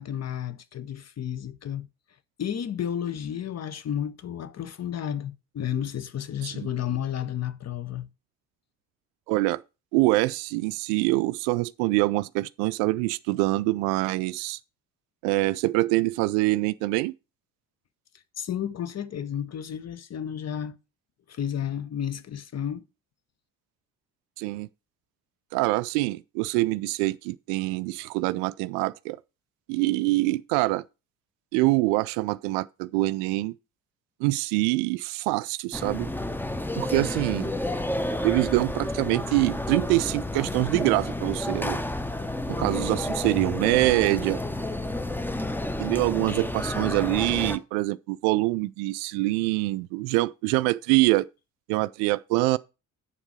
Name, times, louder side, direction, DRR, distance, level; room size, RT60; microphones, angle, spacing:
voice 1, 0.0-1.9 2.4-8.1 18.4-20.8 21.3-22.8, left 9 dB, 35° left, 0.8 m, -32 dB
voice 2, 9.3-9.6 9.9-14.6 15.2-17.1 24.4-24.7 25.5-29.2 29.7-30.8 31.5-33.5 34.2-36.1 36.8-37.5 38.2-41.8 42.5-44.4 45.8-51.3 51.7-52.6, right 20 dB, 60° right, 0.5 m, -25 dB
sound 1, 35.7-47.6, left 1 dB, 5° left, 0.8 m, -30 dB
8.5 x 7.1 x 5.0 m
figure-of-eight pair, 40°, 47 cm